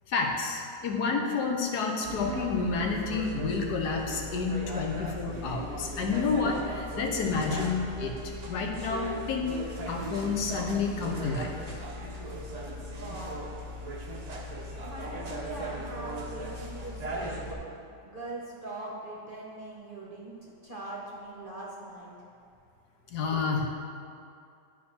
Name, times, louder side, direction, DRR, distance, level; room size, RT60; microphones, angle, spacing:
voice 1, 0.1-11.5 23.1-23.7, left 4 dB, 70° left, 2 dB, 1.3 m, -30 dB
sound 1, 2.0-17.5, equal, 55° right, 0.4 m, -38 dB
voice 2, 12.5-13.4 14.0-14.1 14.6-17.5 18.0-22.1 23.1-23.2, right 2 dB, 35° right, -4 dB, 1.0 m, -42 dB
11.0 x 4.4 x 4.3 m, 2.4 s
omnidirectional pair, 1.9 m